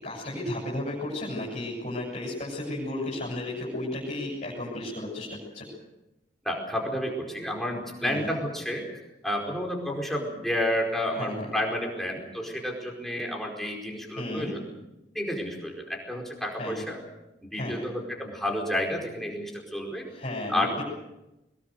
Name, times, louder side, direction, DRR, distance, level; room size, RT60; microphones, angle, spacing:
voice 1, 0.0-5.7 8.0-8.3 11.2-11.4 14.2-14.5 16.5-16.8 17.5-17.9 20.0-20.8, left 1 dB, 40° left, -4 dB, 7.4 m, -34 dB
voice 2, 6.4-14.7 15.1-17.0 17.4-20.0 20.5-20.8, left 1 dB, ahead, -1 dB, 4.8 m, -31 dB
23.0 x 22.0 x 6.7 m, 0.94 s
head